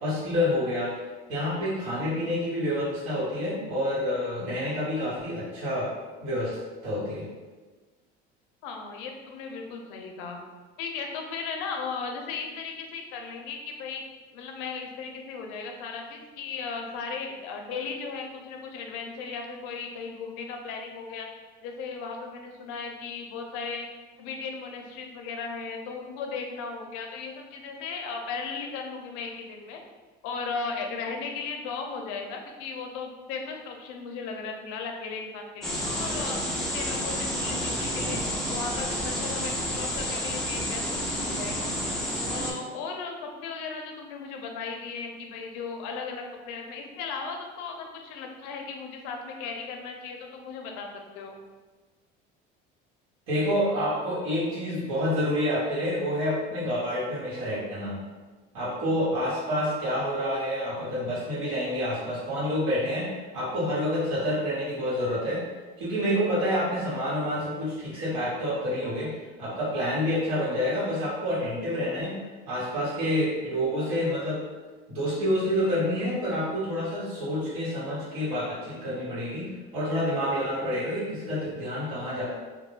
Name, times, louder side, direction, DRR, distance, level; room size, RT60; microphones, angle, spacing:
voice 1, 0.0-0.9 1.3-5.9 6.2-6.6 6.8-7.3 53.3-57.9 58.5-65.4 65.8-72.1 72.5-74.4 74.9-79.4 79.7-82.3, equal, 85° right, -9 dB, 1.2 m, -28 dB
voice 2, 8.6-10.4 10.8-14.0 14.3-21.3 21.6-23.9 24.2-29.8 30.2-36.4 36.7-38.2 38.5-41.7 42.3-50.9 51.1-51.4, left 5 dB, 85° left, 3 dB, 0.5 m, -36 dB
sound 1, 35.6-42.5, equal, ahead, 0.3 m, -30 dB
2.2 x 2.2 x 3.1 m, 1.3 s
cardioid pair, 160°, 20 cm